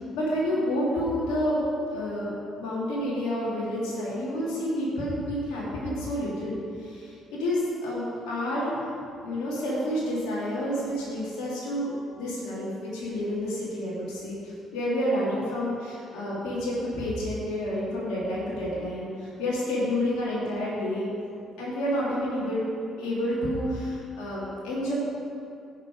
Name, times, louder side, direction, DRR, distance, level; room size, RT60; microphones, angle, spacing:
voice 1, 0.1-2.3 2.6-8.8 9.2-21.1 21.6-22.6 23.0-24.9, equal, 70° left, -7 dB, 2.8 m, -29 dB
16.5 x 6.1 x 5.0 m, 2.6 s
hypercardioid pair, 45°, 0 cm